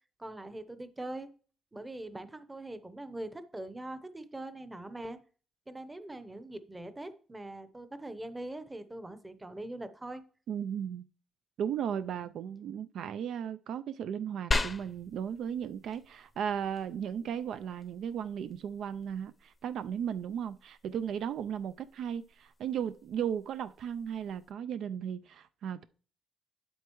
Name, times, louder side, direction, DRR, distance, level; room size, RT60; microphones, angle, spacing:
voice 1, 0.2-1.3 1.7-5.2 5.7-10.2 11.8-12.3, right 1 dB, 15° right, 0.8 m, -42 dB
voice 2, 10.5-11.1 11.6-25.8, right 8 dB, 70° right, 0.4 m, -36 dB
sound 1, 14.5-24.5, left 2 dB, 25° left, 0.6 m, -41 dB
8.3 x 7.9 x 3.0 m
cardioid pair, 125°, 0 cm